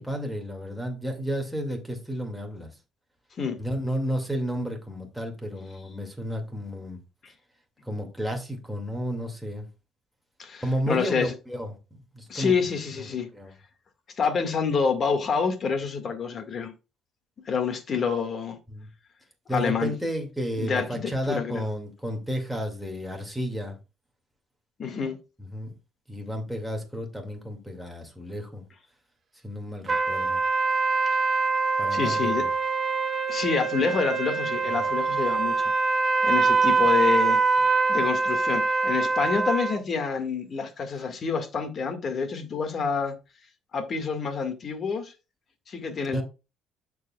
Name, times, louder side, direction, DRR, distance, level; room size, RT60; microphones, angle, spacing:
voice 1, 0.0-2.7 3.6-7.0 7.8-9.6 10.6-12.5 13.0-13.1 13.3-13.5 18.7-18.9 19.5-23.8 25.4-25.7 26.1-28.6 29.4-30.4 31.8-32.5 46.1-46.2, equal, ahead, 2.2 m, -32 dB
voice 2, 10.4-11.3 12.3-13.3 14.2-16.7 17.5-18.6 19.5-19.9 20.6-21.6 24.8-25.2 31.9-32.5 33.3-35.6 36.2-37.4 37.9-43.1 43.7-45.1 45.7-46.2, left 5 dB, 45° left, 1.8 m, -27 dB
sound 1, 29.9-39.8, right 4 dB, 35° right, 1.1 m, -24 dB
13.0 x 4.7 x 2.3 m
supercardioid pair, 85°, 0 cm